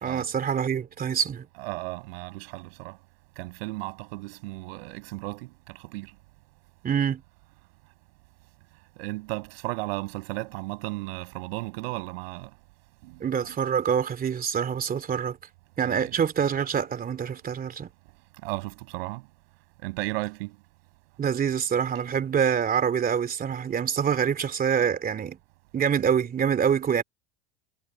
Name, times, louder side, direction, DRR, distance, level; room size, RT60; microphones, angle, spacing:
voice 1, 0.0-1.5 6.8-7.2 13.2-15.4 15.8-17.9 21.2-25.4 25.7-27.0, right 7 dB, 30° right, 3.0 m, -26 dB
voice 2, 1.6-3.0 3.4-6.1 9.0-12.5 13.0-13.2 15.8-16.1 18.4-19.2 19.8-20.6, right 23 dB, 70° right, 6.5 m, -35 dB
supercardioid pair, 105°, 31 cm